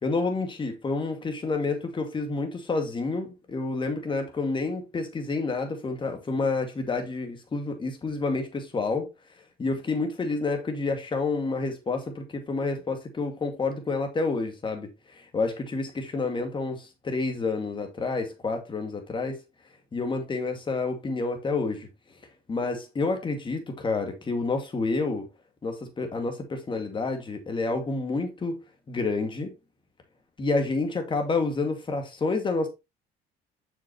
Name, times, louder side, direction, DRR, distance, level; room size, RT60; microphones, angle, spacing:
voice 1, 0.0-9.1 9.6-19.4 19.9-21.9 22.5-25.3 25.6-28.6 28.9-29.5 30.4-32.7, left 3 dB, 30° left, 2.2 m, -29 dB
7.3 x 6.2 x 3.0 m
cardioid pair, 110°, 17 cm